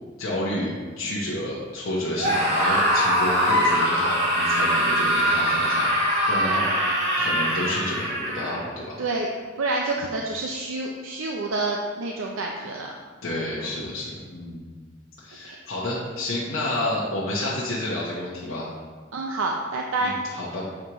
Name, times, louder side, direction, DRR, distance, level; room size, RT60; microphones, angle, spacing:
voice 1, 0.2-5.9 6.3-6.7 7.2-9.0 13.2-14.7 15.2-18.7 20.0-20.6, left 1 dB, 80° left, -6 dB, 0.9 m, -30 dB
Screaming, 2.1-8.6, equal, 55° right, 1.7 m, -22 dB
voice 2, 9.6-12.9 13.6-13.7 15.4-15.6 19.1-20.1, right 2 dB, 85° right, 0 dB, 0.5 m, -28 dB
7.4 x 4.6 x 2.9 m, 1.5 s
head